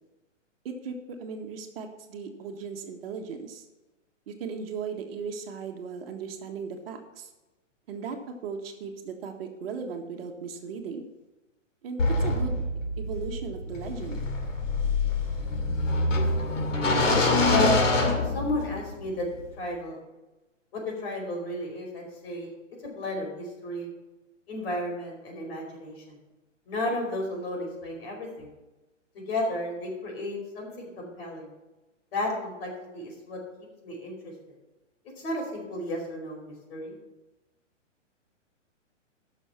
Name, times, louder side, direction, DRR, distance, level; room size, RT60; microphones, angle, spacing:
voice 1, 0.6-3.6 4.3-7.3 7.9-11.0 11.8-12.6 13.0-14.2, right 5 dB, 50° right, 4 dB, 1.5 m, -37 dB
sound 1, 12.0-18.9, left 2 dB, 75° left, 2.6 m, -25 dB
voice 2, 17.5-19.3 19.6-20.0 20.7-22.5 22.8-23.9 24.5-26.2 26.7-28.5 29.1-31.5 32.1-33.4 33.8-34.3 35.2-37.0, left 1 dB, 50° left, 0 dB, 4.8 m, -33 dB
14.0 x 6.4 x 5.8 m, 1.1 s
hypercardioid pair, 145°, 38 cm